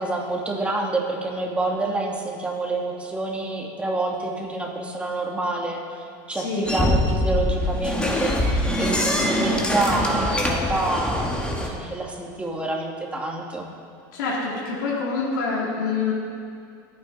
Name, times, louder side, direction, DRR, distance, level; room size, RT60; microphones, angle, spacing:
voice 1, 0.0-13.7, right 2 dB, 10° right, -1 dB, 2.5 m, -27 dB
voice 2, 6.3-6.7 14.1-16.1, left 4 dB, 90° left, -5 dB, 3.7 m, -26 dB
sound 1, 6.7-11.7, left 1 dB, 10° left, 2.2 m, -23 dB
25.0 x 9.5 x 4.3 m, 2.3 s
supercardioid pair, 120°, 10 cm